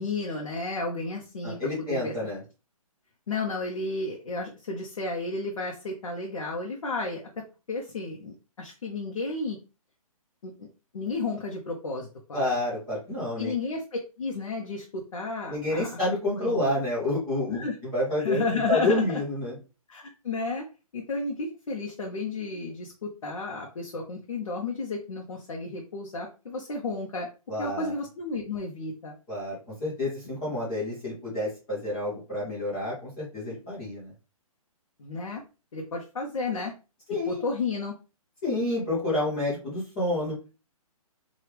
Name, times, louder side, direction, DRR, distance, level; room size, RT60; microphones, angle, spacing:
voice 1, 0.0-2.1 3.3-9.6 10.4-10.7 10.9-12.5 13.4-13.8 14.2-16.0 16.4-16.7 17.5-17.8 18.2-19.2 19.9-20.6 20.9-27.3 27.6-29.1 35.0-35.4 35.7-36.7 37.3-37.9, left 3 dB, 65° left, 0 dB, 0.7 m, -32 dB
voice 2, 1.4-2.4 12.3-13.5 15.5-19.6 27.5-27.9 29.3-29.5 29.8-34.1 37.1-37.5 38.4-40.3, left 1 dB, 10° left, -8 dB, 0.6 m, -29 dB
3.0 x 2.3 x 3.2 m, 0.32 s
hypercardioid pair, 175°, 19 cm